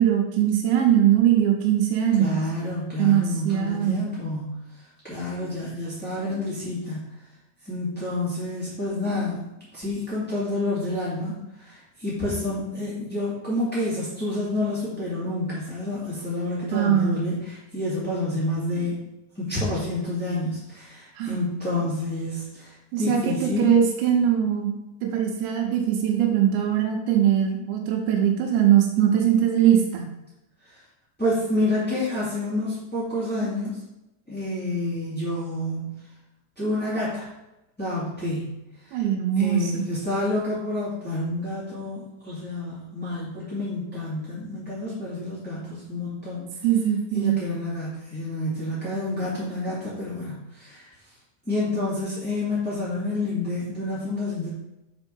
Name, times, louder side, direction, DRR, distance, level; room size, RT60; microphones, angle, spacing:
voice 1, 0.0-2.4 3.0-4.1 16.7-17.3 21.2-21.4 22.9-30.1 38.9-39.9 46.6-47.4, right 10 dB, 80° right, 1 dB, 3.1 m, -21 dB
voice 2, 2.2-4.6 5.0-7.1 7.6-19.0 19.3-23.7 30.6-30.8 31.2-33.8 34.3-35.9 36.5-37.3 37.8-38.5 38.8-39.0 39.4-46.5 47.1-50.9 51.4-54.5, left 2 dB, 5° left, -10 dB, 1.0 m, -29 dB
7.8 x 4.6 x 5.4 m, 0.93 s
omnidirectional pair, 5.2 m